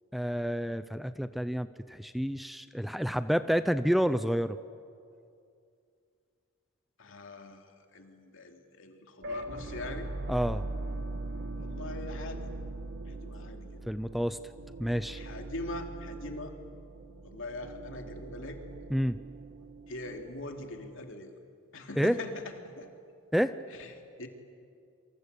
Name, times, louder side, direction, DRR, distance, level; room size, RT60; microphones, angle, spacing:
voice 1, 0.1-4.6 10.3-10.6 13.9-14.4 14.8-15.2 18.9-19.2 22.0-22.2 23.3-23.5, equal, ahead, 12 dB, 0.6 m, -29 dB
voice 2, 7.0-10.1 11.6-12.5 13.1-13.8 15.1-16.5 17.2-18.6 19.9-21.3 21.7-22.4 22.8-22.9 23.7-23.9 24.2-24.3, left 2 dB, 65° left, 4 dB, 3.0 m, -42 dB
sound 1, 9.2-21.1, right 2 dB, 60° right, 1.6 m, -41 dB
27.5 x 26.0 x 8.4 m, 2.4 s
head